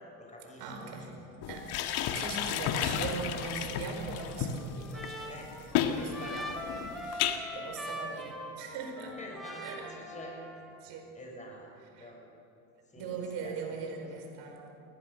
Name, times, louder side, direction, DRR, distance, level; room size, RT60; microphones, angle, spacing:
voice 1, 0.0-1.2 2.0-2.2 5.3-5.5 5.8-6.4 9.2-10.4 11.1-11.7 12.0-12.2 12.9-13.8, left 1 dB, 15° left, -1 dB, 6.5 m, -47 dB
voice 2, 0.6-5.5 5.8-9.2 9.6-9.9 10.8-11.1 11.9-12.1 12.9-14.7, right 5 dB, 70° right, 3 dB, 5.0 m, -41 dB
sound 1, 1.4-7.4, left 9 dB, 65° left, 1.8 m, -32 dB
Trumpet, 4.1-10.8, equal, ahead, 3.8 m, -42 dB
21.0 x 18.0 x 6.9 m, 2.8 s
supercardioid pair, 105°, 42 cm